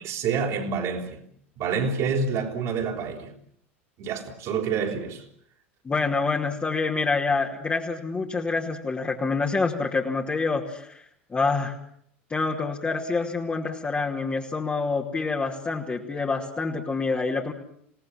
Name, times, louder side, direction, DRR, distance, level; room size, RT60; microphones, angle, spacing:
voice 1, 0.0-1.2 1.6-3.3 4.0-5.2, right 5 dB, 50° right, 4.4 m, -27 dB
voice 2, 5.8-11.0 11.3-11.8 12.3-17.5, left 4 dB, 20° left, 2.7 m, -27 dB
27.5 x 18.0 x 7.5 m
figure-of-eight pair, 85°, 7 cm